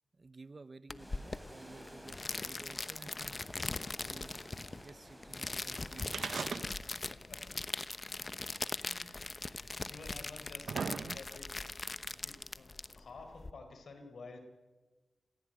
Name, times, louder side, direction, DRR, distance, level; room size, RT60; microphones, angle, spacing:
voice 1, 0.1-6.3, right 3 dB, 40° right, 15 dB, 0.9 m, -54 dB
sound 1, 0.9-13.5, left 3 dB, 35° left, 1.0 m, -41 dB
sound 2, 1.0-6.7, equal, ahead, 6.4 m, -55 dB
sound 3, 6.1-7.1 7.4-7.5 8.4-8.5 9.4-9.5 10.2-11.5 12.4-12.5, right 5 dB, 70° right, 0.7 m, -39 dB
voice 2, 6.4-6.8 7.1-7.5 8.5-11.7 12.2-14.4, left 3 dB, 70° left, 6 dB, 4.8 m, -52 dB
28.5 x 15.5 x 9.1 m, 1.3 s
cardioid pair, 80°, 0 cm